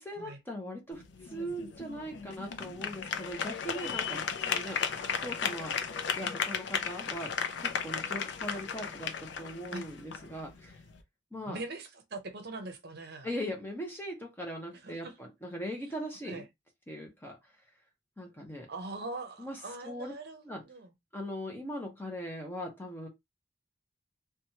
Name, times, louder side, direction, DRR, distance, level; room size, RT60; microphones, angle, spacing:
voice 1, 0.0-4.9 5.2-7.3 7.6-10.8 11.3-11.6 13.2-16.4 16.9-17.5 18.2-18.7 19.4-20.1 20.4-20.6 21.1-23.1, equal, 10° left, 0.6 m, -40 dB
sound 1, 0.9-11.0, left 6 dB, 60° left, 0.4 m, -35 dB
voice 2, 4.4-5.4 9.7-9.8 11.5-13.3 14.8-15.1 16.2-16.4 18.7-20.9, right 2 dB, 55° right, 0.6 m, -42 dB
3.0 x 2.2 x 2.7 m
head